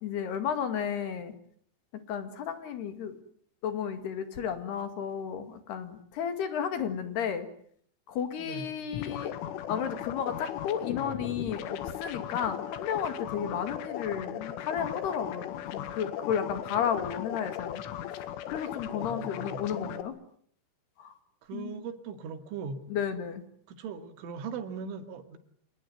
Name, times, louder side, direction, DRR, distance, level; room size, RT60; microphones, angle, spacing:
voice 1, 0.0-1.3 2.1-3.2 3.6-7.5 8.1-9.3 9.7-17.8 18.1-20.2 21.0-21.1 21.5-21.8 22.9-23.4, left 8 dB, 60° left, 10 dB, 4.0 m, -33 dB
voice 2, 8.4-8.7 18.9-19.7 21.4-22.8 23.7-25.4, right 6 dB, 80° right, 9 dB, 4.6 m, -39 dB
sound 1, 8.9-20.0, left 11 dB, 90° left, 4.1 m, -37 dB
27.5 x 19.5 x 9.4 m, 0.62 s
omnidirectional pair, 5.5 m